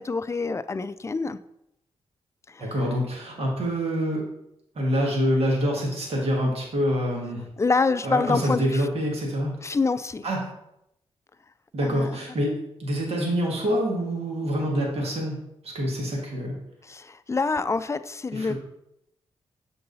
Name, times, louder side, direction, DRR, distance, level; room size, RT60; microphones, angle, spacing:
voice 1, 0.0-1.4 2.5-2.7 7.6-8.8 9.6-10.2 11.8-12.1 16.9-18.5, left 4 dB, 25° left, 13 dB, 0.4 m, -26 dB
voice 2, 2.6-4.2 4.8-7.5 8.0-9.5 10.2-10.5 11.7-15.4 15.6-16.6 18.3-18.5, equal, 60° right, -2 dB, 1.9 m, -26 dB
6.7 x 3.9 x 4.1 m, 0.80 s
supercardioid pair, 50°, 12 cm